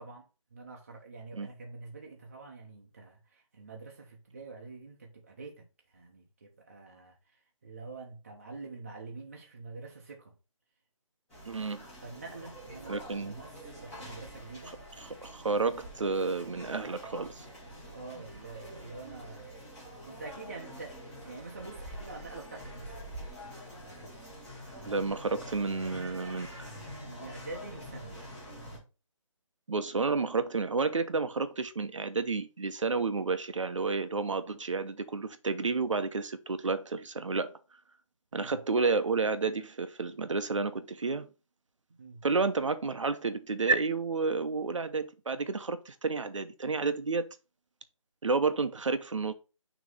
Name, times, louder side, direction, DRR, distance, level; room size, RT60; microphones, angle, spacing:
voice 1, 0.0-5.7 5.9-10.3 12.0-14.7 17.9-19.6 20.0-23.0 27.0-28.2 38.3-38.6 41.9-42.2, right 3 dB, 25° right, 0.8 m, -46 dB
sound 1, 11.3-28.8, equal, 5° left, 1.0 m, -46 dB
voice 2, 11.5-11.8 12.9-13.3 15.0-17.5 24.8-26.7 29.7-37.6 38.3-41.3 42.2-47.3 48.2-49.3, right 4 dB, 65° right, 0.8 m, -31 dB
6.3 x 3.1 x 5.4 m
hypercardioid pair, 175°, 17 cm